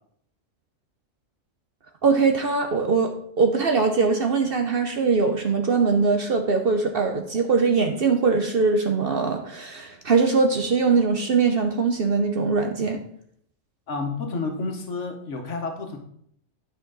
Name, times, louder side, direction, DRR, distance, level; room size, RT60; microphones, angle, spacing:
voice 1, 2.0-13.0, right 4 dB, 50° right, 5 dB, 0.8 m, -22 dB
voice 2, 13.9-16.0, left 3 dB, 60° left, 3 dB, 1.4 m, -30 dB
8.7 x 5.2 x 3.9 m, 0.66 s
omnidirectional pair, 1.4 m